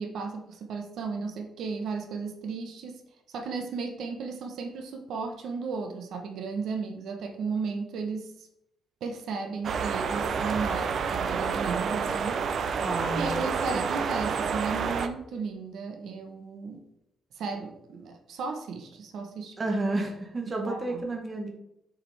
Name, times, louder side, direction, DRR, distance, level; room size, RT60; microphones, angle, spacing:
voice 1, 0.0-3.0 3.3-8.5 9.0-12.7 13.1-16.8 17.4-19.5 20.6-21.1, right 4 dB, 65° right, 4 dB, 0.9 m, -35 dB
sound 1, 9.6-15.1, right 6 dB, 45° right, 0.5 m, -29 dB
voice 2, 12.8-13.3 13.7-13.9 19.6-21.5, right 2 dB, 20° right, 1 dB, 1.0 m, -31 dB
7.5 x 4.9 x 3.3 m, 0.81 s
cardioid pair, 175°, 0 cm